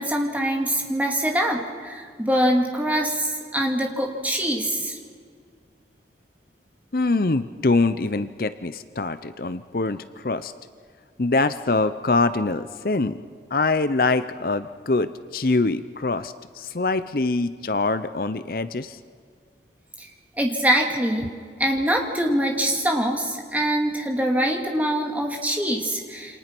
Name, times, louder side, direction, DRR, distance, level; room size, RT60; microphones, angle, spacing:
voice 1, 0.0-5.0 20.0-20.1 20.4-21.3 21.6-26.4, right 1 dB, 10° right, 1 dB, 2.6 m, -24 dB
voice 2, 6.9-10.5 11.2-13.2 13.5-19.0, left 3 dB, 50° left, 12 dB, 0.7 m, -24 dB
28.5 x 26.0 x 6.1 m, 2.1 s
head